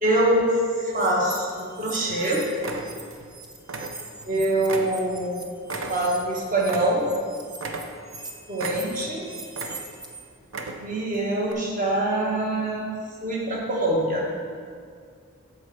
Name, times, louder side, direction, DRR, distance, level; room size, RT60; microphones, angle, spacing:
voice 1, 0.0-0.5 0.8-2.4 4.3-5.5 5.9-7.1 8.5-9.3 10.8-12.9 13.2-14.3, right 1 dB, 35° right, -2 dB, 1.3 m, -24 dB
sound 1, 0.9-3.0 3.3-10.2, right 3 dB, 20° right, 0.6 m, -41 dB
sound 2, 1.1-1.7 2.1-2.3 2.6-3.3 3.6-4.3 4.7-7.2 7.6-8.2 8.6-9.1 9.5-10.1 10.4-11.0 11.5-11.6, right 3 dB, 65° right, 0.7 m, -35 dB
8.0 x 4.3 x 6.8 m, 2.2 s
head